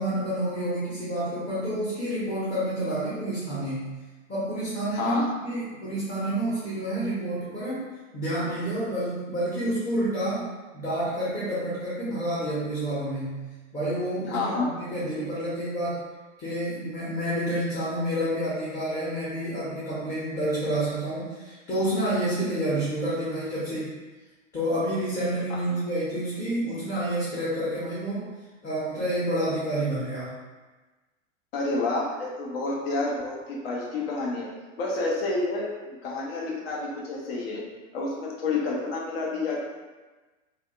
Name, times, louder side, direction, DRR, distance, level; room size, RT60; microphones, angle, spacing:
voice 1, 0.0-3.9 4.3-7.8 8.1-10.5 10.7-13.4 13.7-16.0 16.4-23.9 24.5-28.3 28.6-30.3, right 1 dB, 20° left, -9 dB, 0.9 m, -29 dB
voice 2, 4.9-5.3 14.3-14.7 31.5-34.5 34.8-37.6 37.9-39.6, left 3 dB, 50° left, -3 dB, 0.7 m, -29 dB
3.4 x 2.3 x 2.2 m, 1.2 s
figure-of-eight pair, 90°, 39 cm